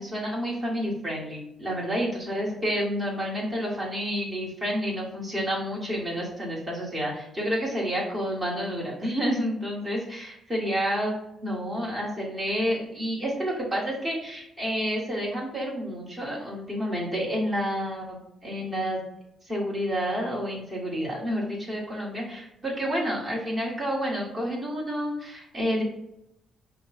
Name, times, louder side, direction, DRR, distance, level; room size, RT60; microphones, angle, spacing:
voice 1, 0.0-11.2 11.4-19.0 19.4-25.8, equal, 25° right, -5 dB, 1.6 m, -29 dB
5.1 x 2.3 x 4.2 m, 0.83 s
cardioid pair, 90°, 0 cm